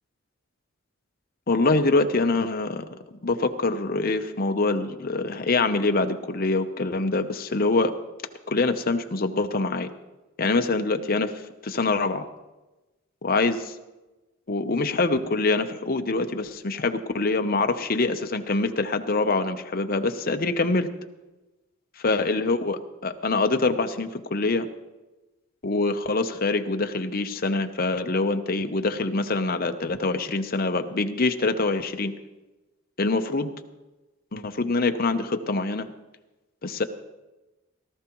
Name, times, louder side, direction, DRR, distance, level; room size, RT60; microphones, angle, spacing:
voice 1, 1.5-2.9 3.2-7.9 8.5-9.9 10.4-11.3 11.6-12.3 13.2-13.7 14.5-20.9 22.0-24.7 25.6-32.1 33.0-33.5 34.3-35.9 36.6-36.8, left 3 dB, 45° left, 7 dB, 0.8 m, -25 dB
18.0 x 13.0 x 3.1 m, 1.1 s
head